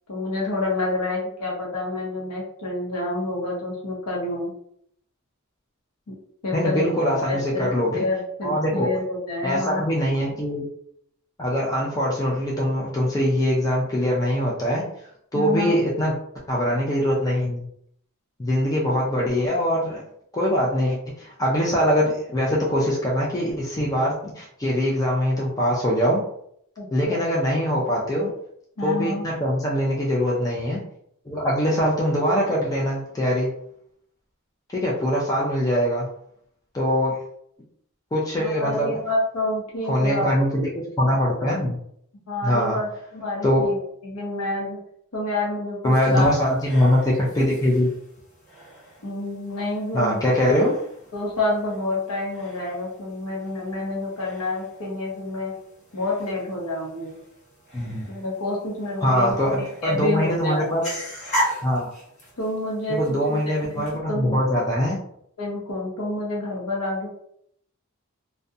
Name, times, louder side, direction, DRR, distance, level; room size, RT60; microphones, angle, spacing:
voice 1, 0.1-4.5 6.1-6.2 6.4-9.8 15.3-15.8 26.8-27.2 28.8-29.2 38.3-40.3 42.3-43.8 44.0-44.8 45.1-46.3 49.0-50.2 51.1-55.5 55.9-57.2 58.1-60.7 62.4-64.4 65.4-67.1, left 2 dB, 90° left, -3 dB, 0.7 m, -28 dB
voice 2, 6.5-8.0 8.4-8.9 9.4-10.6 11.4-14.8 15.3-16.1 16.5-17.7 18.4-20.0 20.3-26.2 26.9-28.3 28.8-30.8 31.3-33.5 34.7-36.1 36.7-37.2 38.1-39.0 39.8-41.8 42.4-42.8 43.4-43.7 45.8-47.9 49.9-50.8 57.7-58.1 59.0-60.8 61.6-61.9 62.9-65.0, equal, 15° left, -4 dB, 0.4 m, -22 dB
sound 1, 45.8-64.0, equal, 35° left, 1.2 m, -38 dB
2.4 x 2.1 x 2.6 m, 0.69 s
head